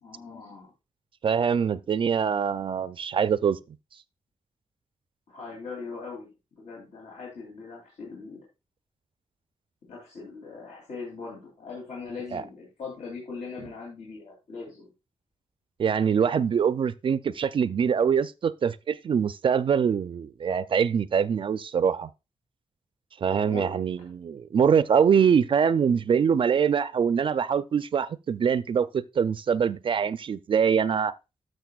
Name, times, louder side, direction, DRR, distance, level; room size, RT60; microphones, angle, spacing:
voice 1, 0.0-0.7 5.3-6.3 6.6-8.4 9.9-14.9 23.4-24.1, left 4 dB, 90° left, 2.9 m, -40 dB
voice 2, 1.2-3.6 12.3-12.4 15.8-22.1 23.2-31.1, right 7 dB, 45° right, 0.3 m, -24 dB
12.5 x 6.6 x 2.3 m
wide cardioid pair, 170°, 12 cm